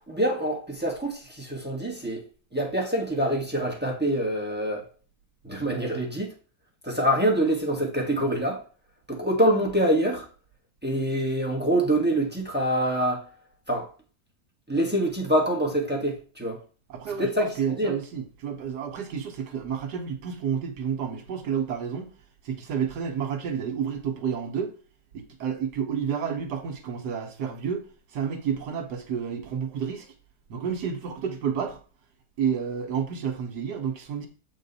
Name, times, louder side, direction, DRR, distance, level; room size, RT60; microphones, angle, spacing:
voice 1, 0.1-2.3 2.5-4.9 5.4-6.3 6.8-8.6 9.1-10.3 10.8-13.3 13.7-13.9 14.7-16.6 17.2-17.9, right 1 dB, 5° right, 1.3 m, -25 dB
voice 2, 16.9-22.1 22.4-24.7 25.1-30.1 30.5-31.8 32.4-34.3, right 7 dB, 75° right, 1.5 m, -30 dB
7.5 x 4.4 x 4.0 m
omnidirectional pair, 1.8 m